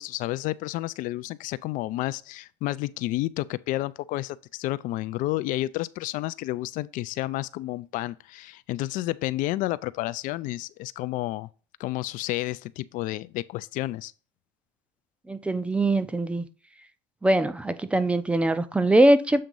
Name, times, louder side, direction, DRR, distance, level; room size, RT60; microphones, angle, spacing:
voice 1, 0.0-11.5 11.8-14.1, left 17 dB, 55° left, 0.4 m, -30 dB
voice 2, 15.3-16.4 17.2-19.4, right 1 dB, 5° right, 0.6 m, -22 dB
7.6 x 2.9 x 5.3 m
supercardioid pair, 115°, 17 cm